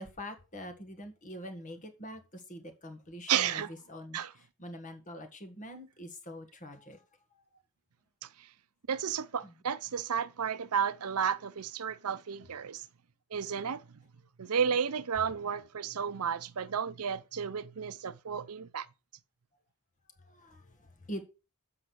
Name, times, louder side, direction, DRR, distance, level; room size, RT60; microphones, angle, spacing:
voice 1, 0.0-7.0 7.3-7.4 8.9-9.0 9.4-9.6 20.2-21.2, equal, 35° left, 1.7 m, -45 dB
voice 2, 3.3-3.7 4.1-4.3 8.9-12.8 13.3-13.8 14.4-18.9, right 7 dB, 85° right, 0.6 m, -32 dB
7.7 x 6.0 x 6.2 m
head